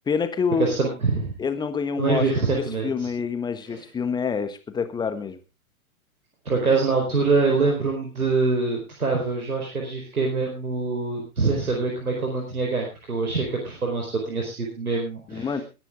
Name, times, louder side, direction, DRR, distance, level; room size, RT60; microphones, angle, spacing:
voice 1, 0.1-0.7 1.4-2.2 2.5-5.4 15.3-15.6, left 6 dB, 10° left, 10 dB, 1.3 m, -27 dB
voice 2, 0.6-1.4 2.0-3.1 3.7-3.8 6.4-15.6, right 4 dB, 75° right, 1 dB, 4.5 m, -24 dB
21.0 x 10.5 x 3.7 m, 0.29 s
figure-of-eight pair, 115°, 44 cm